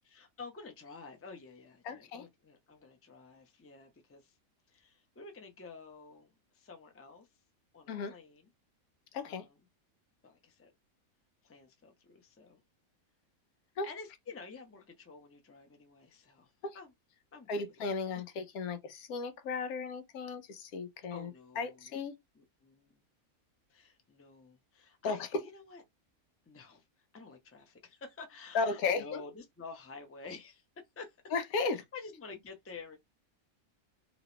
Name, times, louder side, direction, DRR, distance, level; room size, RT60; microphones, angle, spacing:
voice 1, 0.0-4.4 4.7-7.3 7.7-8.5 9.2-9.5 10.2-10.7 11.4-12.6 13.8-16.9 17.3-18.0 21.1-22.0 22.3-23.0 23.7-25.8 26.5-30.6 31.0-31.2 31.7-33.0, left 4 dB, 15° left, 0.4 m, -50 dB
voice 2, 1.8-2.3 7.9-8.1 9.1-9.4 13.8-13.9 16.6-16.8 17.5-21.3 21.6-22.1 25.0-25.4 28.5-29.2 31.3-31.8, left 4 dB, 90° left, 1.2 m, -35 dB
3.0 x 2.9 x 2.9 m
omnidirectional pair, 1.5 m